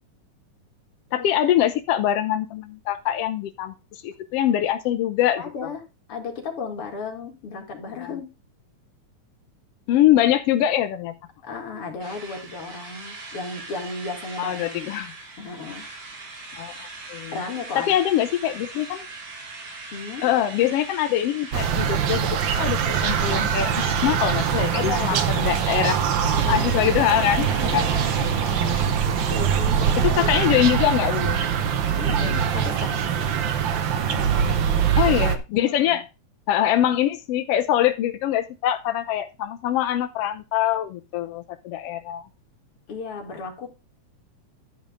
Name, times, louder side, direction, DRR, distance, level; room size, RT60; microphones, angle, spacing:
voice 1, 1.1-5.4 9.9-11.1 14.4-15.1 16.6-17.3 17.7-19.1 20.2-22.3 22.5-26.0 26.5-27.5 27.7-27.9 28.2-28.6 30.0-31.4 32.1-32.4 35.0-36.0 36.5-42.3, left 11 dB, 75° left, 9 dB, 1.4 m, -23 dB
voice 2, 5.4-5.8 6.1-8.3 11.4-15.0 15.4-15.9 17.3-17.9 19.9-20.2 24.7-25.3 26.3-26.8 27.6-28.2 29.3-30.6 31.8-33.3 34.1-34.8 35.6-36.0 42.9-43.7, left 4 dB, 50° left, 2 dB, 2.9 m, -34 dB
Drill, 12.0-22.4 22.8-29.7, right 3 dB, 70° right, 4.2 m, -41 dB
sound 1, 21.5-35.4, right 8 dB, 85° right, 1.0 m, -23 dB
sound 2, 26.4-29.9, right 4 dB, 45° right, 3.5 m, -34 dB
11.5 x 5.3 x 5.0 m, 0.27 s
omnidirectional pair, 3.6 m